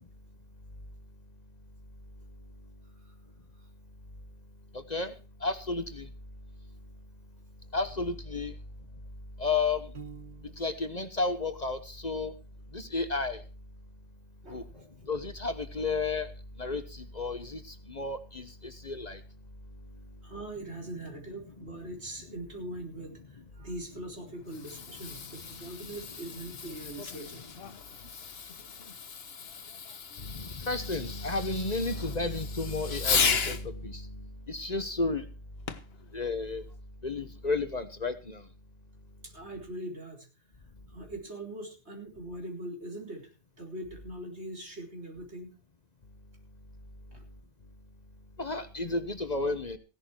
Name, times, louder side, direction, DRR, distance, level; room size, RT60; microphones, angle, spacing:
voice 1, 4.7-5.1 5.4-6.1 7.7-8.5 9.4-9.9 10.6-12.3 12.7-13.4 14.5-14.6 15.1-16.3 16.6-19.2 30.2-34.1 34.5-35.3 36.1-36.6 37.0-38.4 48.4-49.8, left 3 dB, 40° left, 10 dB, 1.2 m, -32 dB
Piano, 9.9-10.9, right 6 dB, 45° right, 1.2 m, -47 dB
voice 2, 14.4-14.9 20.2-27.4 39.2-40.3 40.9-45.5 47.1-47.2, right 1 dB, 70° right, 2 dB, 4.5 m, -42 dB
Fireworks, 24.3-33.6 35.7-36.0 36.7-36.8, left 6 dB, 60° left, 1.4 m, -35 dB
16.5 x 11.0 x 4.5 m, 0.33 s
omnidirectional pair, 1.2 m